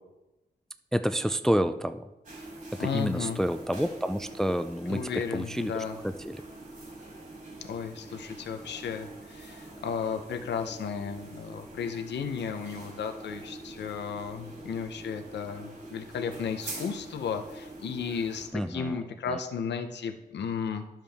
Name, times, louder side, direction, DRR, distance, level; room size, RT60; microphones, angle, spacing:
voice 1, 0.9-2.1 2.8-5.8 6.3-6.4 18.5-19.0 19.3-19.4, equal, 5° left, 11 dB, 0.4 m, -29 dB
sound 1, 2.2-18.5, right 2 dB, 50° right, 3.1 m, -44 dB
voice 2, 2.8-3.4 4.9-6.0 7.6-20.8, left 6 dB, 85° left, 6 dB, 0.8 m, -34 dB
10.5 x 7.4 x 3.5 m, 1.0 s
cardioid pair, 80°, 17 cm